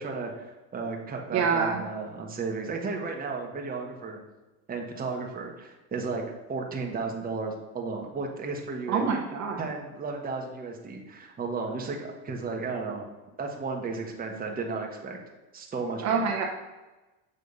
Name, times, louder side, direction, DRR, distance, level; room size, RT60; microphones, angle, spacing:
voice 1, 0.0-4.2 4.7-6.2 6.5-9.0 9.6-13.1 13.4-15.2 15.5-16.3, right 4 dB, 25° right, 1 dB, 1.2 m, -34 dB
voice 2, 1.3-1.8 8.9-9.7 16.0-16.4, right 5 dB, 45° right, 0 dB, 1.0 m, -26 dB
6.7 x 3.3 x 5.4 m, 1.1 s
supercardioid pair, 115°, 38 cm